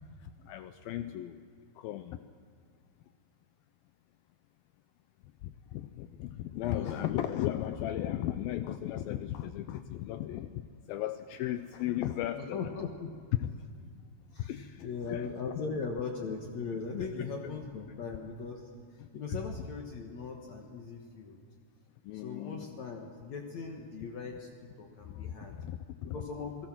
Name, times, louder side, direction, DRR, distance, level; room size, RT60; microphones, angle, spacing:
voice 1, 0.2-1.4 1.8-2.2 5.4-10.6 10.9-12.6 13.4-13.5 14.4-15.6 16.9-17.1 22.1-22.7 25.1-25.3 25.6-26.2, left 12 dB, 80° left, 10 dB, 2.3 m, -36 dB
voice 2, 6.7-7.1 12.5-13.3 14.3-18.7 19.1-21.4 22.1-24.5 24.8-25.5 26.0-26.7, left 5 dB, 60° left, 2 dB, 2.2 m, -39 dB
28.0 x 18.0 x 6.0 m, 2.2 s
omnidirectional pair, 4.5 m